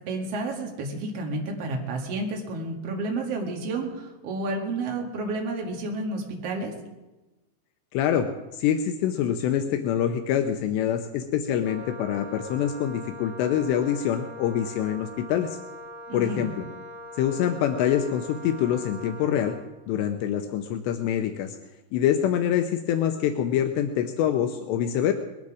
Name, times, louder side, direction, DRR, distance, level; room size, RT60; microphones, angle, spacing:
voice 1, 0.1-6.7 16.1-16.5, right 2 dB, 45° right, 1 dB, 2.5 m, -31 dB
voice 2, 7.9-15.6 16.1-16.7 17.1-19.6 19.9-21.6 21.9-25.1, left 9 dB, 80° left, 7 dB, 2.9 m, -25 dB
Wind instrument woodwind instrument, 11.6-19.7, left 1 dB, 10° right, 3.3 m, -42 dB
21.0 x 12.5 x 4.9 m, 1.1 s
omnidirectional pair, 5.0 m